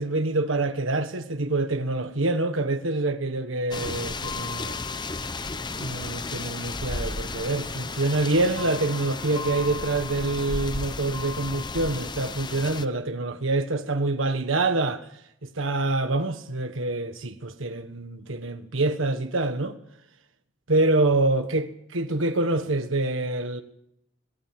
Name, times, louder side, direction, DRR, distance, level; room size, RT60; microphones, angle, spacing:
voice 1, 0.0-4.8 5.7-15.1 15.4-19.8 20.7-23.6, right 2 dB, 85° right, 1.5 m, -26 dB
sound 1, 3.7-12.9, left 3 dB, 20° left, 0.8 m, -33 dB
22.5 x 18.0 x 7.7 m
head